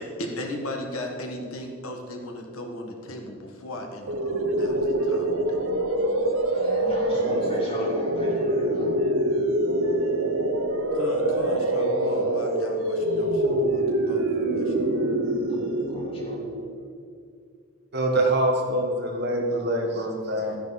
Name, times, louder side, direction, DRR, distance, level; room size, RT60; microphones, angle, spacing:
voice 1, 0.0-5.7 10.9-15.0 20.4-20.6, left 1 dB, 80° left, 2 dB, 1.6 m, -36 dB
sound 1, 4.1-16.9, right 1 dB, 75° right, 0.9 m, -25 dB
voice 2, 6.5-9.1 15.5-16.4, equal, 25° left, -4 dB, 2.7 m, -37 dB
voice 3, 17.9-20.6, right 1 dB, 50° right, 1 dB, 1.6 m, -24 dB
13.5 x 10.0 x 4.3 m, 2.4 s
head